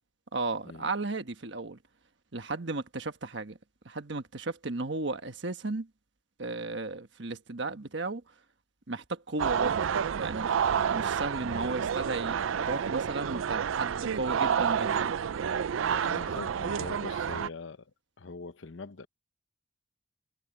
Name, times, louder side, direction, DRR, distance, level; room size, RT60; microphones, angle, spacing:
voice 1, 0.3-1.8 2.3-3.6 3.8-5.9 6.4-8.2 8.9-9.9 10.1-10.5 10.9-15.1, right 3 dB, 60° right, 1.3 m, -34 dB
sound 1, 9.4-17.5, right 7 dB, 75° right, 0.4 m, -29 dB
voice 2, 16.0-17.9 18.2-19.1, left 3 dB, 70° left, 0.8 m, -42 dB
head